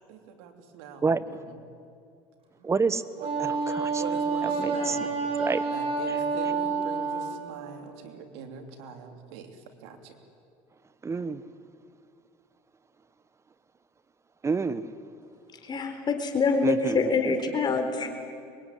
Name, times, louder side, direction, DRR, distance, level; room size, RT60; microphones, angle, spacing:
voice 1, 0.1-1.0 1.5-1.6 3.2-3.3 3.6-5.2 5.7-10.1, right 6 dB, 85° right, 5 dB, 3.2 m, -42 dB
voice 2, 2.6-3.0 3.4-4.0 4.4-5.0 5.4-5.6 6.1-6.2 11.0-11.4 14.4-14.9 16.6-17.3 17.7-17.8, right 4 dB, 20° right, 15 dB, 1.1 m, -28 dB
Wind instrument woodwind instrument, 3.2-7.4, right 4 dB, 45° right, 5.8 m, -28 dB
voice 3, 15.6-18.1, left 4 dB, 35° left, 5 dB, 4.1 m, -26 dB
24.0 x 22.0 x 9.8 m, 2.4 s
supercardioid pair, 105°, 13 cm